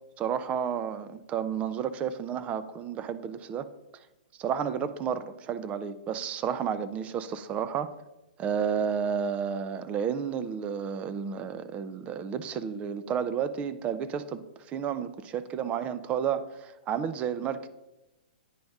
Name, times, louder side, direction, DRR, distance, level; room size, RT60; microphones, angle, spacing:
voice 1, 0.2-3.7 4.4-7.9 8.4-17.7, right 7 dB, 25° right, 13 dB, 0.4 m, -31 dB
9.2 x 5.1 x 3.5 m, 0.99 s
hypercardioid pair, 125°, 5 cm